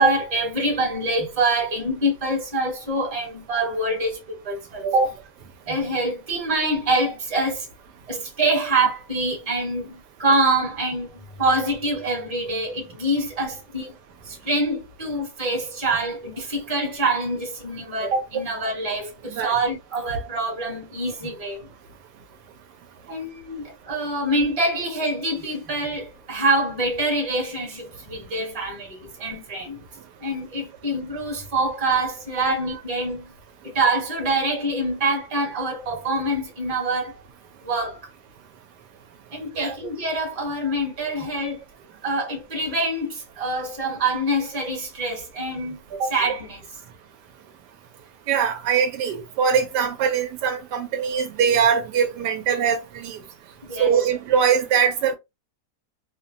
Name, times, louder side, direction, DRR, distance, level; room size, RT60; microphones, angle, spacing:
voice 1, 0.0-5.1 5.7-7.7 8.1-14.0 14.2-21.7 23.1-29.8 30.2-33.3 33.6-37.2 37.6-38.1 39.3-41.6 42.0-46.6 53.7-54.1, right 2 dB, 25° right, 1.0 m, -25 dB
voice 2, 48.3-53.2 53.8-55.1, right 7 dB, 80° right, 1.1 m, -22 dB
3.0 x 2.1 x 2.6 m
omnidirectional pair, 1.9 m